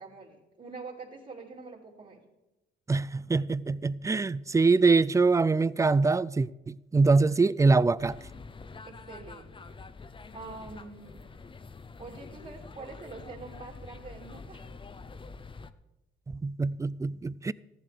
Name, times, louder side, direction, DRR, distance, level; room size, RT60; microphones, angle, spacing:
voice 1, 0.0-2.2 8.8-9.7 10.3-11.3 12.0-14.7, right 4 dB, 40° right, 2.7 m, -45 dB
voice 2, 2.9-8.2 16.3-17.5, right 3 dB, 15° right, 0.4 m, -24 dB
sound 1, 8.0-15.7, left 4 dB, 25° left, 0.7 m, -46 dB
14.5 x 11.0 x 5.0 m
cardioid pair, 90°, 20 cm